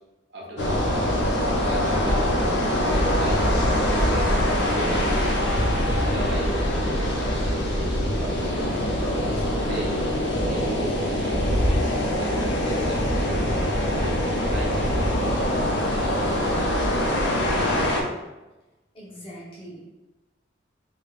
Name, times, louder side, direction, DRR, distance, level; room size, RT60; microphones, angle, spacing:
voice 1, 0.3-1.1 1.7-2.6 2.9-4.4 4.7-5.4 6.1-8.7 9.3-10.0 10.5-11.9 12.2-13.3 13.8-15.4, right 1 dB, 70° right, -5 dB, 1.0 m, -36 dB
sound 1, 0.6-18.0, equal, 75° left, 0.6 m, -23 dB
sound 2, 3.4-16.7, equal, 5° left, 0.7 m, -40 dB
sound 3, 4.5-6.2, right 1 dB, 25° right, 0.3 m, -38 dB
voice 2, 18.9-19.8, equal, 30° left, -6 dB, 1.0 m, -41 dB
3.2 x 3.1 x 2.5 m, 1.0 s
head